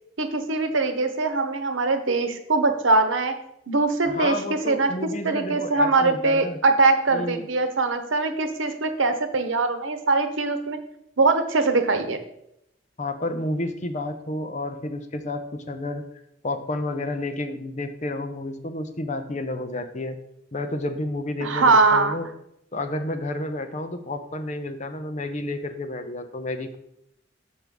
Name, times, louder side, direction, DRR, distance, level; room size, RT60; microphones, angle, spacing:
voice 1, 0.2-3.3 3.7-4.9 5.2-10.8 11.2-12.2 21.4-22.1, right 3 dB, 90° right, 8 dB, 0.9 m, -22 dB
voice 2, 4.0-6.6 7.1-7.5 13.0-16.0 16.4-20.2 20.5-22.3 22.7-26.8, left 2 dB, 40° left, 7 dB, 0.7 m, -30 dB
6.3 x 6.2 x 5.2 m, 0.78 s
head